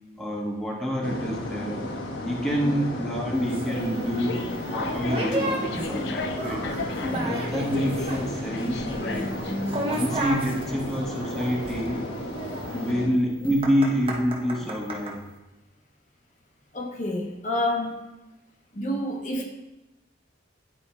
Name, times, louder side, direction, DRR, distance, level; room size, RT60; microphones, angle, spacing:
voice 1, 0.2-1.8 2.2-6.7 7.2-9.4 9.9-12.0 12.8-15.2, equal, ahead, -2 dB, 0.9 m, -27 dB
sound 1, 1.0-13.1, left 1 dB, 90° left, 1.1 m, -34 dB
sound 2, 3.5-15.2, right 1 dB, 30° right, 0.8 m, -33 dB
sound 3, 4.0-10.8, left 4 dB, 65° left, 0.5 m, -37 dB
voice 2, 16.7-18.0 18.7-19.5, left 1 dB, 40° left, 1 dB, 0.8 m, -29 dB
10.0 x 3.4 x 4.3 m, 1.0 s
head